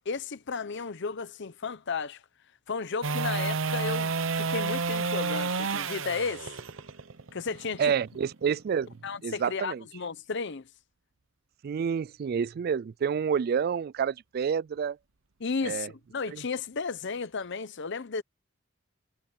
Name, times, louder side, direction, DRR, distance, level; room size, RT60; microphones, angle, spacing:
voice 1, 0.1-2.2 2.7-6.5 7.3-7.9 9.0-10.7 15.4-18.2, left 4 dB, 60° left, 0.8 m, -33 dB
sound 1, 3.0-9.2 15.7-15.8, right 4 dB, 75° right, 1.0 m, -31 dB
voice 2, 7.8-8.9 9.2-9.8 11.6-15.0 15.6-15.9 16.3-16.4, right 7 dB, 50° right, 0.3 m, -28 dB
head